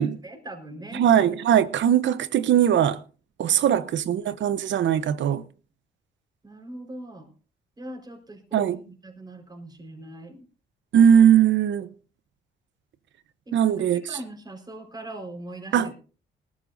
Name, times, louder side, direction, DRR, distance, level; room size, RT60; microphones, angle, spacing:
voice 1, 0.0-1.0 3.4-3.7 6.4-7.3 7.8-10.4 13.5-15.9, right 1 dB, 20° right, 4.5 m, -41 dB
voice 2, 0.9-3.0 3.4-5.4 8.5-8.8 10.9-11.9 13.5-14.0 15.7-15.9, right 9 dB, 70° right, 0.9 m, -20 dB
20.0 x 13.5 x 2.6 m
cardioid pair, 90°, 20 cm